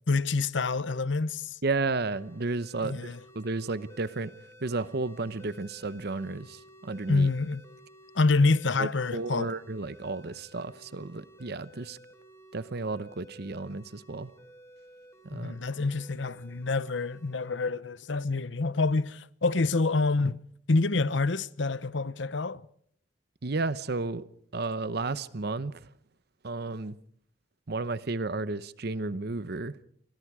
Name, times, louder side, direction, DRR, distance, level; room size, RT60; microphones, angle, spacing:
voice 1, 0.1-1.6 2.8-3.2 7.1-7.6 8.1-9.5 15.3-20.4 20.7-22.6, left 3 dB, 70° left, 0.9 m, -27 dB
voice 2, 1.6-4.3 4.6-7.3 8.8-12.0 12.5-14.3 15.2-15.6 23.4-24.2 24.5-25.7 26.4-27.0 27.7-29.8, right 3 dB, 55° right, 0.9 m, -33 dB
sound 1, 2.1-17.7, equal, 15° left, 4.5 m, -54 dB
29.5 x 24.5 x 4.9 m
head